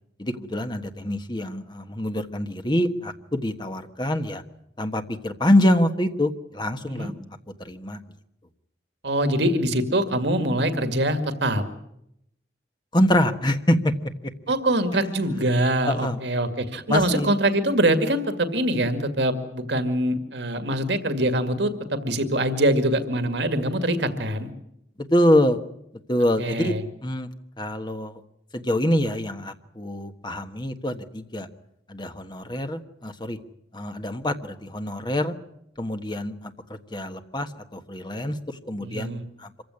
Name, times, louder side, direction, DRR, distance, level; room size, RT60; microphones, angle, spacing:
voice 1, 0.2-4.4 4.8-7.1 7.6-8.0 12.9-13.9 15.9-16.2 16.9-17.3 25.0-25.6 26.1-26.8 27.0-27.3 27.6-28.2 28.5-31.5 31.9-33.4 33.7-35.3 35.8-39.5, left 1 dB, 25° left, 7 dB, 1.4 m, -25 dB
voice 2, 9.0-11.6 14.5-24.5 26.4-26.8 38.8-39.2, right 1 dB, 85° right, 8 dB, 2.2 m, -24 dB
26.0 x 15.5 x 9.7 m, 0.80 s
head